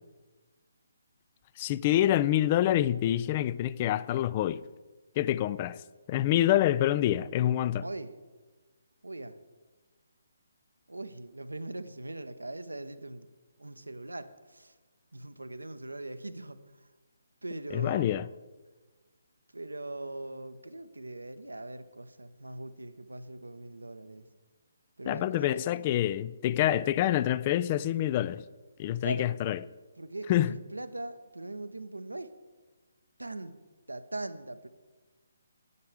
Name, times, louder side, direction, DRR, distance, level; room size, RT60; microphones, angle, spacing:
voice 1, 1.6-4.6 5.2-5.8 6.1-7.8 17.7-18.2 25.1-28.4 28.8-29.6 30.3-30.5, left 12 dB, 30° left, 0.3 m, -26 dB
voice 2, 7.8-8.1 9.0-9.4 10.9-13.3 13.6-14.7 15.1-16.9 17.4-18.3 19.5-24.3 25.0-25.6 29.0-29.3 30.0-32.3 33.2-33.6 33.9-34.7, right 2 dB, 85° right, 0.8 m, -41 dB
9.6 x 9.6 x 4.9 m
figure-of-eight pair, 140°, 0 cm